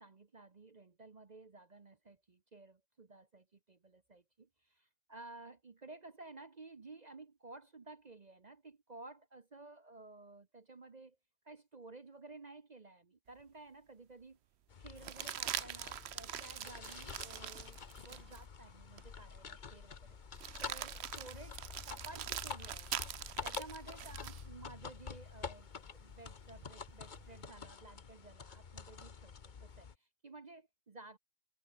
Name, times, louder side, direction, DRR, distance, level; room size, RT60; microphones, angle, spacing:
voice 1, 0.0-11.2 11.4-14.4 14.8-20.2 20.6-23.0 23.4-31.2, right 3 dB, 35° right, 1.0 m, -54 dB
sound 1, 13.4-13.5 15.0-18.4 19.0-19.1 20.4-24.5 26.6-27.5, right 10 dB, 60° right, 0.9 m, -43 dB
sound 2, 14.7-30.0, left 6 dB, 40° left, 1.0 m, -48 dB
omnidirectional pair, 1.5 m